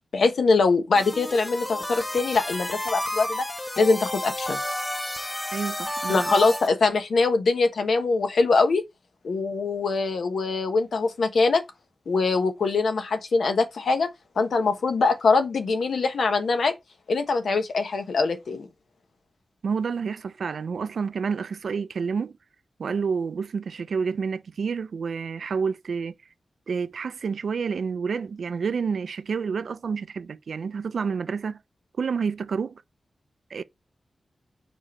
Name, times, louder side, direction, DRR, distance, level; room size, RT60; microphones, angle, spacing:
voice 1, 0.1-3.4 3.8-4.6 6.1-8.8 9.2-11.6 12.1-14.1 14.4-16.7 17.1-18.7, left 4 dB, 85° left, 1.1 m, -23 dB
sound 1, 1.0-6.7, left 1 dB, 15° left, 0.8 m, -31 dB
voice 2, 5.5-6.3 19.6-22.3 22.8-26.1 26.7-31.6 32.0-32.8 33.5-33.6, right 5 dB, 80° right, 0.4 m, -29 dB
5.0 x 4.5 x 4.3 m
wide cardioid pair, 155°, 0 cm